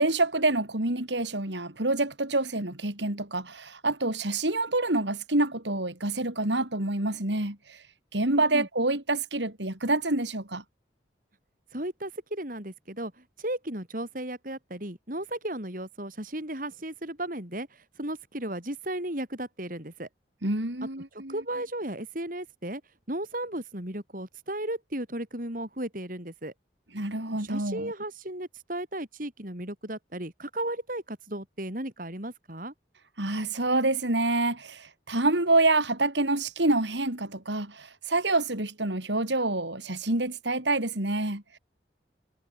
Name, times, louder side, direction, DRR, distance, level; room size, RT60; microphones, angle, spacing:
voice 1, 0.0-7.8 8.1-10.6 20.4-21.3 26.9-27.9 33.2-41.6, right 2 dB, 80° right, 4.4 m, -27 dB
voice 2, 8.3-8.7 11.7-20.1 21.1-22.8 23.1-26.5 27.4-32.7, right 1 dB, 50° right, 6.1 m, -35 dB
head